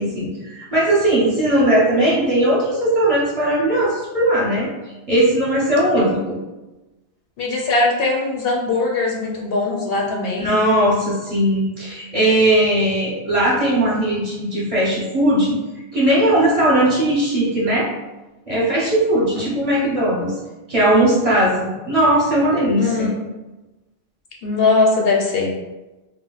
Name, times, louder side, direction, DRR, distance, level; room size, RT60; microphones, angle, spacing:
voice 1, 0.0-4.7 5.1-6.3 10.4-15.6 15.9-17.9 18.5-20.3 20.7-23.1, right 1 dB, 35° right, -6 dB, 0.9 m, -18 dB
voice 2, 7.4-10.5 22.8-23.1 24.4-25.5, left 3 dB, 65° left, -1 dB, 0.8 m, -20 dB
2.8 x 2.1 x 3.9 m, 1.1 s
omnidirectional pair, 1.1 m